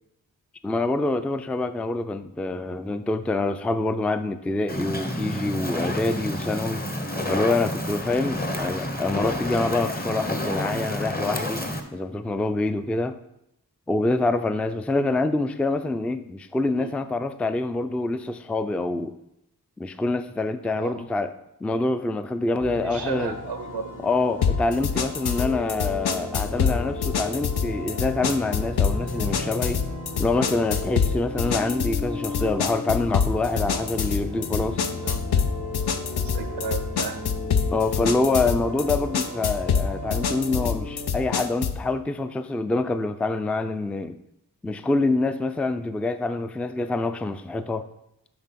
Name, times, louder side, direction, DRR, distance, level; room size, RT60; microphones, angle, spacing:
voice 1, 0.6-6.8 7.3-11.6 11.9-13.2 13.9-19.1 19.8-21.3 21.6-23.4 24.0-29.8 30.2-34.8 37.7-44.2 44.6-47.9, left 2 dB, 5° left, 11 dB, 0.3 m, -26 dB
Fire, 4.7-11.8, left 1 dB, 25° left, 0.9 m, -29 dB
sound 1, 22.6-41.1, left 2 dB, 50° left, 1.2 m, -35 dB
voice 2, 22.8-23.9 34.7-37.2, right 6 dB, 85° right, 8 dB, 0.6 m, -35 dB
sound 2, 24.4-41.9, left 6 dB, 75° left, 0.6 m, -26 dB
9.8 x 3.8 x 4.1 m, 0.80 s
cardioid pair, 55°, 39 cm